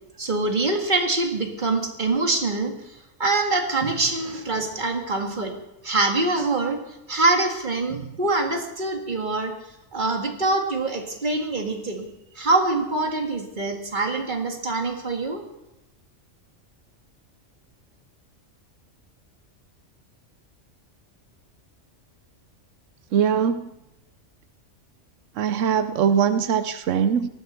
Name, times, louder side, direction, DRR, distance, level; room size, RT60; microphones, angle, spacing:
voice 1, 0.2-2.7 3.2-5.6 5.8-6.8 7.1-9.5 9.9-12.0 12.4-15.4, right 3 dB, 40° right, 3 dB, 2.1 m, -24 dB
voice 2, 23.1-23.7 25.4-27.3, right 7 dB, 90° right, 11 dB, 1.1 m, -22 dB
18.5 x 14.0 x 4.4 m, 0.90 s
omnidirectional pair, 1.3 m